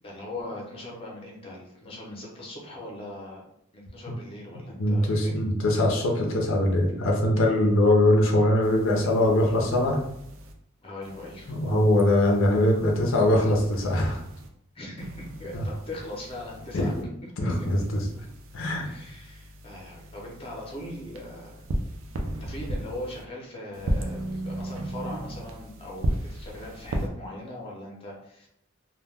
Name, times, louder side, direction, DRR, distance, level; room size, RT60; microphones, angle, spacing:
voice 1, 0.0-3.4 3.7-5.4 10.8-11.5 14.7-16.9 18.8-21.7 22.4-28.5, left 1 dB, 25° left, -2 dB, 0.6 m, -40 dB
voice 2, 4.8-10.0 11.5-14.2 15.5-15.7 16.7-16.9 17.4-18.1 18.5-18.9, left 1 dB, 70° left, 0 dB, 0.5 m, -22 dB
sound 1, 8.6-10.5 11.0-14.5 15.0-17.0 17.5-23.2 23.7-27.1, right 1 dB, 75° right, 0.4 m, -36 dB
2.2 x 2.1 x 3.3 m, 0.75 s
head